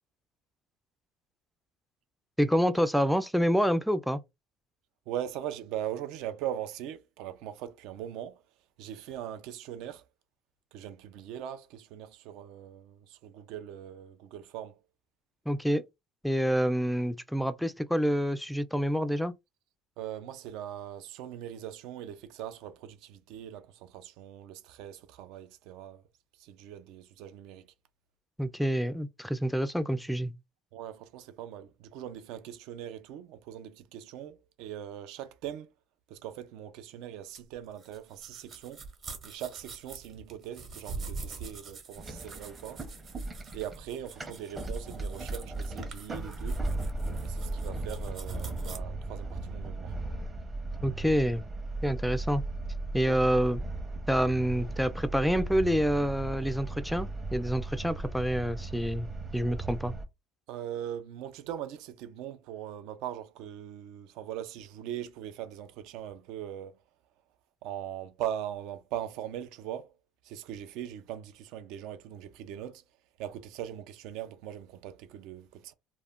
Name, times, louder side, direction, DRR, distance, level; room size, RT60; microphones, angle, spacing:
voice 1, 2.4-4.2 15.5-15.8 16.2-19.3 28.4-30.3 50.8-51.4 51.8-52.4 52.9-53.6 54.1-59.9, equal, ahead, 0.3 m, -27 dB
voice 2, 5.1-8.4 8.8-10.0 10.7-14.7 20.0-26.0 26.4-27.7 30.7-35.7 36.1-38.8 39.2-42.8 43.5-46.6 47.2-49.9 53.0-53.2 60.5-66.8 67.6-69.9 70.2-72.8 73.2-75.7, right 11 dB, 70° right, 0.4 m, -40 dB
sound 1, 37.3-48.8, right 4 dB, 45° right, 1.0 m, -45 dB
sound 2, 41.9-60.0, right 2 dB, 20° right, 0.7 m, -37 dB
2.4 x 2.1 x 3.5 m
supercardioid pair, 105°, 0 cm